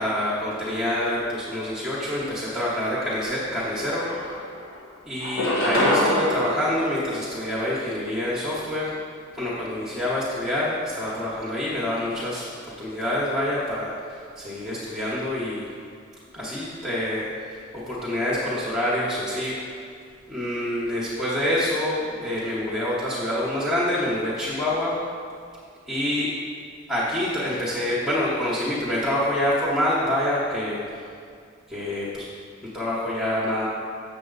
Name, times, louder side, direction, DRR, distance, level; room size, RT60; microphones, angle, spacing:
voice 1, 0.0-4.3 5.1-8.9 9.3-12.5 12.8-15.7 16.3-19.8 20.3-25.0 25.9-26.3 26.9-31.0 31.7-32.3 32.6-33.7, left 1 dB, ahead, -9 dB, 1.0 m, -26 dB
sound 1, 3.5-3.6 4.0-4.7 5.2-7.8, left 1 dB, 60° left, 1.3 m, -25 dB
7.4 x 6.9 x 3.9 m, 2.3 s
head